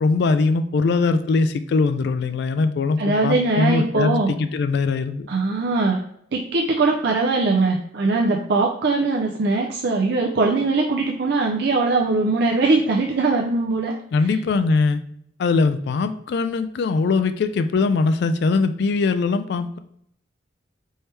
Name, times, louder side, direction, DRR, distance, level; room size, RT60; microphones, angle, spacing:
voice 1, 0.0-5.3 14.1-15.0 15.4-19.8, left 4 dB, 60° left, 10 dB, 0.3 m, -21 dB
voice 2, 3.0-4.3 5.3-6.0 6.3-13.9 14.3-14.4, right 3 dB, 55° right, 0 dB, 0.5 m, -21 dB
4.4 x 3.3 x 3.2 m, 0.69 s
head